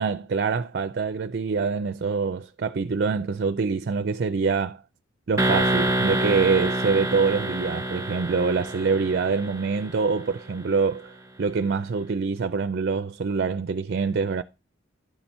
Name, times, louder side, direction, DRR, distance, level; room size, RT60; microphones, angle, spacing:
voice 1, 0.0-4.8 5.3-11.1 11.4-14.4, right 5 dB, 50° right, 0.4 m, -25 dB
sound 1, 5.4-10.3, right 1 dB, 15° right, 0.8 m, -27 dB
11.0 x 4.4 x 5.4 m
head